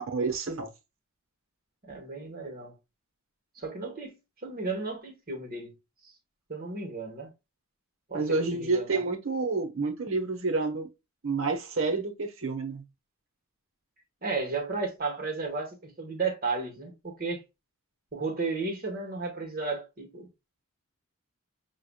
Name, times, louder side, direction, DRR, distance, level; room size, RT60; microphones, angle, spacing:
voice 1, 0.1-0.7 8.1-10.9 11.2-12.8, right 3 dB, 60° right, 1.1 m, -29 dB
voice 2, 1.8-2.8 3.5-4.2 4.4-5.7 6.5-7.3 8.1-9.1 14.2-17.4 18.1-20.3, right 3 dB, 40° right, 1.4 m, -34 dB
6.7 x 2.5 x 2.3 m
head